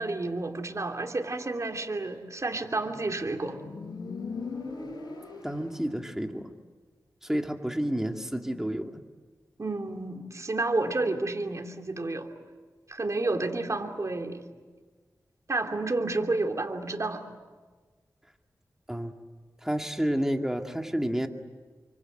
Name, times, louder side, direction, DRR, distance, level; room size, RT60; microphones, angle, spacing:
voice 1, 0.0-3.6 9.6-12.3 12.9-14.4 15.5-17.2, right 2 dB, 50° right, 3 dB, 3.0 m, -30 dB
Motorcycle, 2.5-6.0, left 4 dB, 90° left, 6.7 m, -40 dB
voice 2, 5.4-6.5 7.2-9.0 18.9-19.1 19.6-21.3, equal, 5° right, 4 dB, 2.5 m, -30 dB
28.5 x 25.0 x 8.0 m, 1.4 s
cardioid pair, 55°, 7 cm